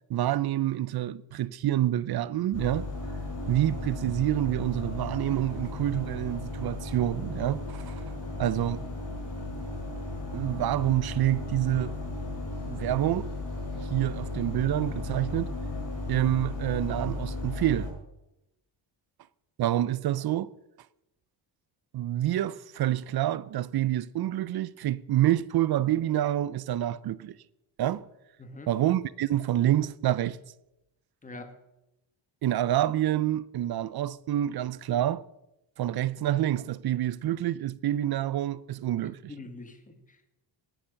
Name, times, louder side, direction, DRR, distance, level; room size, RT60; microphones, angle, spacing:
voice 1, 0.1-2.9 3.5-8.0 8.4-8.9 10.3-11.9 12.6-13.3 13.7-15.5 16.1-17.9 19.6-20.5 21.9-27.3 27.8-28.0 28.7-30.4 32.4-35.2 35.8-39.3, right 13 dB, 55° right, 0.6 m, -27 dB
sound 1, 2.5-17.9, left 2 dB, 40° left, 6.6 m, -35 dB
voice 2, 28.4-28.7 31.2-31.6 39.0-40.3, left 2 dB, 15° left, 1.4 m, -45 dB
19.0 x 7.2 x 6.4 m
cardioid pair, 150°, 46 cm